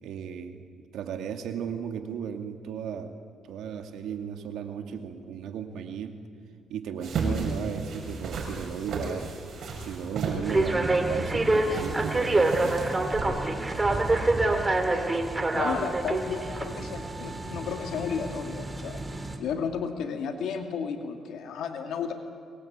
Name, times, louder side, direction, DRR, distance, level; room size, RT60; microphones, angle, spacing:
voice 1, 0.0-0.7 0.9-3.1 3.5-6.2 6.7-9.3 9.8-12.5, right 7 dB, 80° right, 6 dB, 2.2 m, -35 dB
sound 1, 7.0-13.2, right 3 dB, 60° right, 6.6 m, -34 dB
sound 2, 10.4-19.4, right 2 dB, 20° right, 2.9 m, -27 dB
voice 2, 15.5-19.0 19.4-22.1, left 6 dB, 75° left, 5 dB, 2.4 m, -33 dB
23.5 x 20.5 x 8.8 m, 2.2 s
cardioid pair, 90°, 0 cm